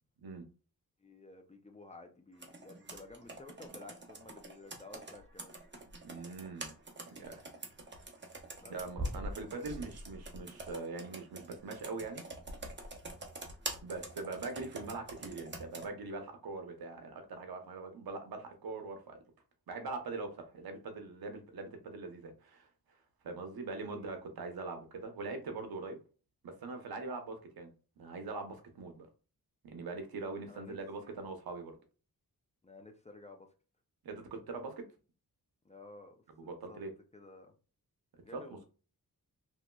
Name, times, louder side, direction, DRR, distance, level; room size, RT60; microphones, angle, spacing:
voice 1, 1.0-5.5 8.6-8.8 24.0-24.2 30.5-31.1 32.6-33.5 35.6-36.8 37.1-37.5 38.2-38.6, left 2 dB, 20° left, 4 dB, 0.4 m, -53 dB
Computer keyboard, 2.4-15.9, right 2 dB, 30° right, 0.8 m, -45 dB
voice 2, 6.0-6.7 7.1-7.4 8.7-12.2 13.8-19.2 19.7-22.7 23.2-26.0 26.4-27.7 28.0-29.1 29.6-31.7 34.0-34.8 36.4-36.9 38.3-38.4, right 3 dB, 70° right, 5 dB, 0.8 m, -42 dB
3.0 x 2.7 x 2.2 m, 0.36 s
cardioid pair, 75°, 38 cm